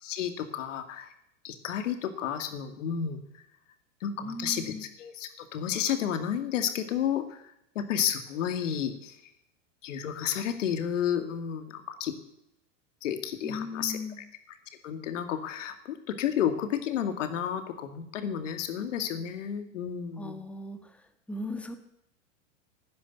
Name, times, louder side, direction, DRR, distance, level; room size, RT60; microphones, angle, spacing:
voice 1, 0.0-1.1 1.4-3.2 4.0-9.2 9.8-12.1 13.0-14.0 14.8-20.4, left 9 dB, 75° left, 8 dB, 2.3 m, -31 dB
voice 2, 4.2-4.8 13.4-14.2 20.2-21.8, left 2 dB, 5° left, 7 dB, 1.5 m, -38 dB
12.5 x 10.5 x 9.5 m, 0.77 s
hypercardioid pair, 115°, 38 cm